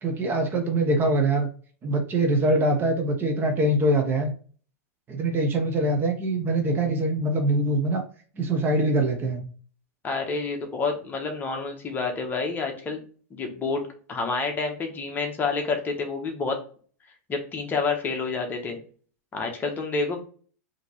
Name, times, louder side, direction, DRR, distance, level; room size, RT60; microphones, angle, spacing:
voice 1, 0.0-1.5 1.8-4.3 5.1-8.0 8.4-9.5, right 1 dB, 25° right, 4 dB, 0.8 m, -23 dB
voice 2, 10.0-13.0 13.3-13.8 14.1-16.6 17.3-18.8 19.3-20.2, left 4 dB, 20° left, 3 dB, 1.0 m, -28 dB
4.9 x 2.9 x 3.0 m, 0.41 s
hypercardioid pair, 125°, 8 cm